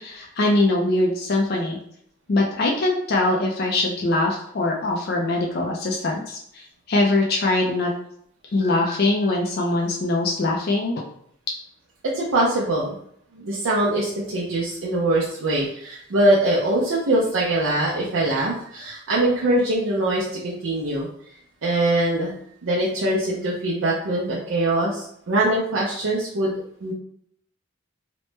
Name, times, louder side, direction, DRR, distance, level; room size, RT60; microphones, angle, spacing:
voice 1, 0.0-1.8 2.3-7.9 8.5-11.0, left 2 dB, 50° left, -1 dB, 0.4 m, -22 dB
voice 2, 12.1-12.9 13.3-21.1 21.6-22.3 22.6-26.5 26.8-26.9, right 1 dB, 75° right, -5 dB, 0.5 m, -22 dB
2.9 x 2.1 x 3.2 m, 0.68 s
head